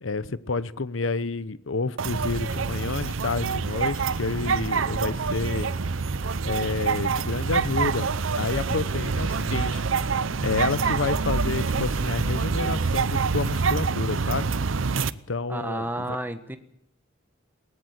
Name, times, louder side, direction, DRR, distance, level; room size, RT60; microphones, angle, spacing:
voice 1, 0.0-5.7 6.4-9.8 10.4-14.5 15.3-16.2, left 3 dB, 85° left, 16 dB, 0.9 m, -29 dB
sound 1, 2.0-15.1, right 4 dB, 85° right, 0.7 m, -26 dB
voice 2, 15.5-16.6, right 1 dB, 10° right, 9 dB, 1.4 m, -31 dB
20.0 x 18.5 x 8.1 m, 0.76 s
head